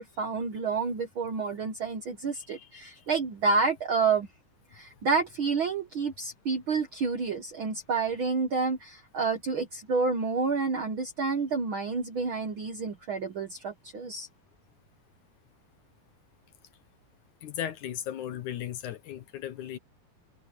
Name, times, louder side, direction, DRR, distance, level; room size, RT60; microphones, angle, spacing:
voice 1, 0.0-4.3 4.7-14.3, right 4 dB, 55° right, 1.5 m, -29 dB
voice 2, 2.4-2.9 17.4-19.8, left 11 dB, 70° left, 2.4 m, -37 dB
omnidirectional pair, 3.9 m